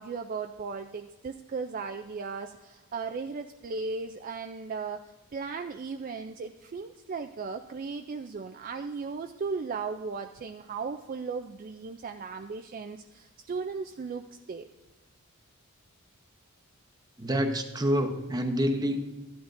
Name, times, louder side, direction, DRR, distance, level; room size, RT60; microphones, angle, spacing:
voice 1, 0.0-14.7, right 4 dB, 40° right, 6 dB, 0.3 m, -36 dB
voice 2, 17.2-19.0, equal, 15° right, 5 dB, 0.8 m, -27 dB
13.5 x 10.5 x 2.5 m, 1.1 s
head